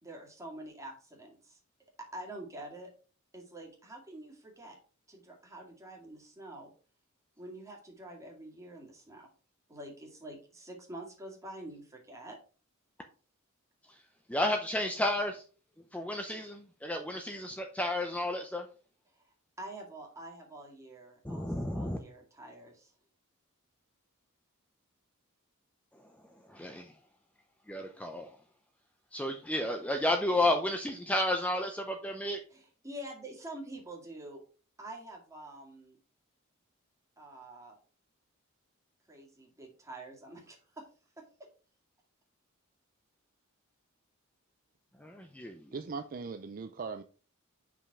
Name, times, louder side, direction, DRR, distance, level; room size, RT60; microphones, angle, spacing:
voice 1, 0.0-1.6 2.1-2.9 3.3-4.8 5.1-6.7 7.4-9.3 9.7-12.4 19.1-22.9 32.5-34.4 34.8-36.0 37.2-37.8 39.1-40.9 41.2-41.3, right 1 dB, 15° right, 2.2 m, -47 dB
voice 2, 14.3-15.4 15.9-18.7 21.2-22.0 26.5-26.9 27.7-28.3 29.1-32.4 45.0-45.7, left 1 dB, 5° left, 0.6 m, -32 dB
voice 3, 45.7-47.0, right 4 dB, 40° right, 0.4 m, -39 dB
5.7 x 5.0 x 4.7 m
head